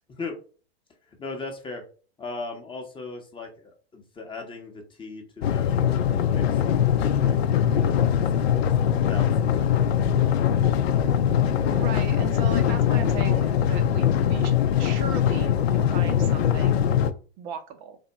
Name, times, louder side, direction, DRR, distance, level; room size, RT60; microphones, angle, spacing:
voice 1, 1.2-1.8 2.2-6.5 7.0-8.7 9.1-10.7, left 3 dB, 15° left, 3 dB, 0.8 m, -38 dB
sound 1, 5.4-17.1, left 9 dB, 70° left, 0.6 m, -22 dB
voice 2, 11.4-14.5 14.8-16.9 17.4-18.0, right 6 dB, 45° right, 6 dB, 0.7 m, -37 dB
3.4 x 2.5 x 4.0 m, 0.38 s
hypercardioid pair, 105°, 32 cm